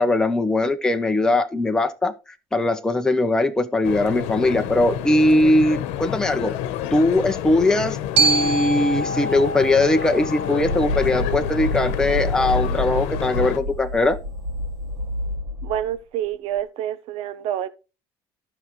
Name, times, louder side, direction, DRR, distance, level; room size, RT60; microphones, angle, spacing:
voice 1, 0.0-2.1 2.5-6.5 6.9-14.2, left 2 dB, 5° left, 0.9 m, -20 dB
sound 1, 3.8-13.6, left 11 dB, 80° left, 1.1 m, -29 dB
Glockenspiel, 8.2-12.3, right 3 dB, 85° right, 4.3 m, -26 dB
sound 2, 10.6-15.9, left 1 dB, 50° right, 1.7 m, -28 dB
voice 2, 15.6-17.7, right 11 dB, 65° right, 1.0 m, -27 dB
12.5 x 6.1 x 3.2 m
cardioid pair, 150°, 11 cm